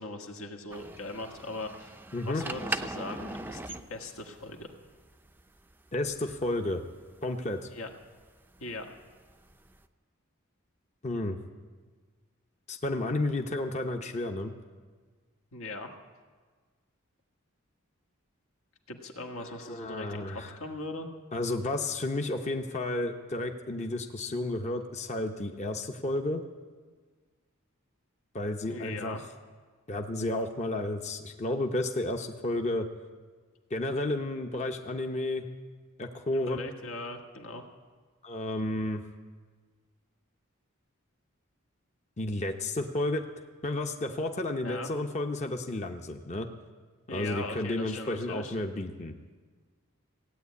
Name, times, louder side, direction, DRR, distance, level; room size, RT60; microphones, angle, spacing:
voice 1, 0.0-1.9 2.2-4.7 7.7-7.9 8.6-8.9 15.5-15.9 18.9-21.1 28.7-29.2 36.3-37.6 44.5-44.9 47.1-48.5, left 2 dB, 85° left, 2 dB, 1.5 m, -40 dB
sound 1, 0.7-9.8, right 2 dB, 10° right, 0.5 m, -40 dB
voice 2, 2.1-2.4 5.9-6.8 7.2-7.7 11.0-11.4 12.7-14.5 19.4-20.6 21.3-26.4 28.3-29.2 29.9-32.9 33.7-35.5 36.0-36.6 38.2-39.0 42.2-43.2 43.6-46.5 47.1-49.1, left 2 dB, 35° left, 4 dB, 0.7 m, -32 dB
16.5 x 9.1 x 8.2 m, 1.5 s
head